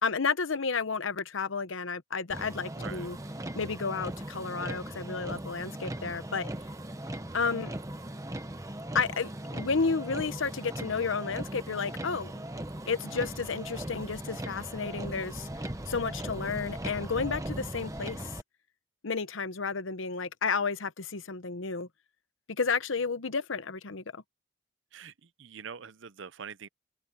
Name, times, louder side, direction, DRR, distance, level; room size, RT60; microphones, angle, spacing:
voice 1, 0.0-3.2 3.6-6.5 7.3-7.7 8.9-12.3 12.9-15.5 15.9-18.4 19.0-21.9 22.5-24.2, left 5 dB, 80° left, 0.9 m, -32 dB
Motor vehicle (road), 2.3-18.4, right 1 dB, 15° right, 1.0 m, -39 dB
voice 2, 2.6-3.1 24.9-26.7, right 6 dB, 70° right, 0.7 m, -44 dB
open air
head